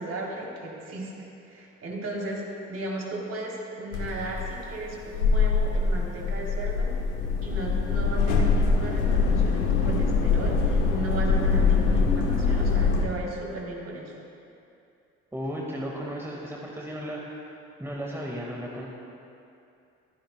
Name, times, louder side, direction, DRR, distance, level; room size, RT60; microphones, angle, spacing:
voice 1, 0.0-7.0 7.4-14.1, right 2 dB, 40° right, -3 dB, 3.9 m, -35 dB
sound 1, 3.9-13.1, left 4 dB, 70° left, 1.4 m, -23 dB
voice 2, 15.3-17.2 17.8-18.9, equal, 5° right, -3 dB, 2.1 m, -34 dB
23.0 x 15.5 x 2.4 m, 2.6 s
figure-of-eight pair, 45°, 39 cm